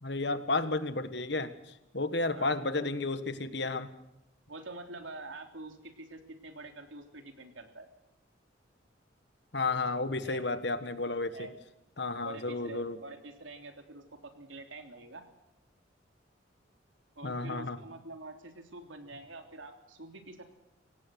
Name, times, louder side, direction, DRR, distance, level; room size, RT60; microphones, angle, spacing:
voice 1, 0.0-1.5 1.9-3.9 9.5-11.5 12.0-13.0 17.2-17.8, left 3 dB, 60° left, 11 dB, 1.6 m, -32 dB
voice 2, 2.3-2.9 4.5-7.9 10.2-10.4 11.3-11.6 12.0-15.2 17.1-20.4, right 2 dB, 90° right, 5 dB, 3.4 m, -46 dB
24.5 x 18.0 x 6.6 m, 0.86 s
head